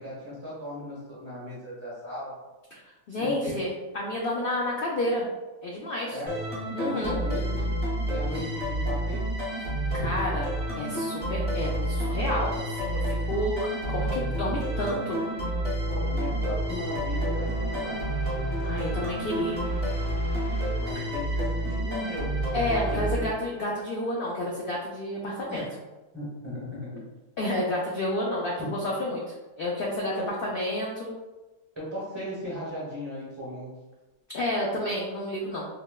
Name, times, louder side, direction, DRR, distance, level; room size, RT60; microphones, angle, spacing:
voice 1, 0.0-2.3 3.2-3.6 6.1-6.4 6.7-7.8 8.1-9.3 15.9-18.0 20.8-22.4 22.9-23.2 25.5-25.7 26.1-27.0 28.6-28.8 30.2-30.3 31.7-33.7, left 1 dB, 20° right, -8 dB, 1.0 m, -37 dB
voice 2, 3.1-5.3 5.6-6.2 6.7-7.2 8.3-8.4 9.9-10.5 10.8-15.2 18.6-19.6 22.5-25.6 27.4-29.2 29.6-31.1 34.3-35.7, left 1 dB, 70° left, -3 dB, 0.5 m, -30 dB
sound 1, 6.3-23.8, right 1 dB, 10° left, 0.7 m, -29 dB
sound 2, 14.9-22.6, right 1 dB, 40° right, 1.1 m, -41 dB
4.1 x 2.1 x 2.2 m, 1.1 s
omnidirectional pair, 1.5 m